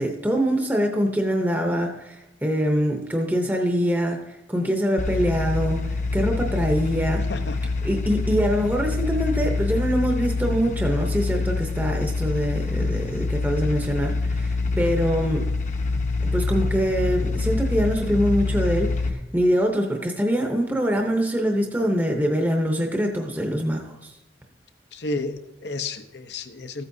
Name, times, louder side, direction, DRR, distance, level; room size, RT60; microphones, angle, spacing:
voice 1, 0.0-7.2 7.8-15.4 16.3-24.2, equal, 10° right, 2 dB, 0.7 m, -24 dB
sound 1, 5.0-19.1, left 3 dB, 40° left, 0.8 m, -26 dB
voice 2, 7.1-7.9 24.9-26.8, left 3 dB, 75° left, 8 dB, 0.7 m, -32 dB
14.5 x 8.4 x 2.7 m, 0.98 s
head